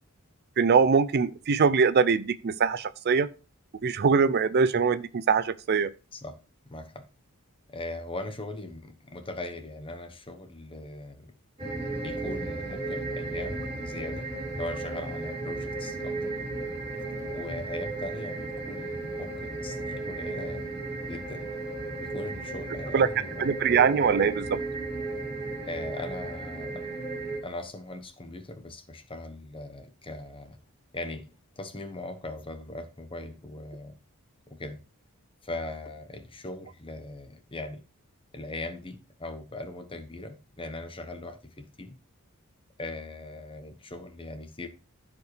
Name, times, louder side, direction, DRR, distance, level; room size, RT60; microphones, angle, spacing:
voice 1, 0.6-3.3 3.8-5.9 22.9-23.1 23.4-24.6, right 5 dB, 45° right, 0.4 m, -23 dB
voice 2, 6.7-7.1 7.7-11.3 12.0-14.3 14.5-16.3 17.3-20.7 21.0-21.5 22.0-23.7 25.6-26.9 27.4-30.6 30.9-34.0 34.5-34.8 35.4-37.8 38.3-41.9 42.8-44.7, left 2 dB, 25° left, 1.1 m, -40 dB
sound 1, 11.6-27.4, right 2 dB, 25° right, 2.7 m, -35 dB
15.0 x 5.1 x 3.2 m
head